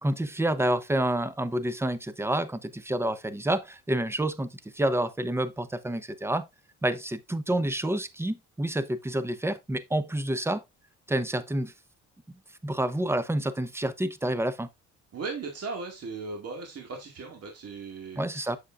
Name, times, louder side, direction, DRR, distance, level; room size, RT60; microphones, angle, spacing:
voice 1, 0.0-6.5 6.8-10.6 11.1-11.7 12.6-14.7 18.2-18.6, right 1 dB, 10° right, 0.7 m, -28 dB
voice 2, 15.1-18.5, right 4 dB, 55° right, 2.0 m, -37 dB
7.3 x 6.6 x 2.4 m
cardioid pair, 90°, 30 cm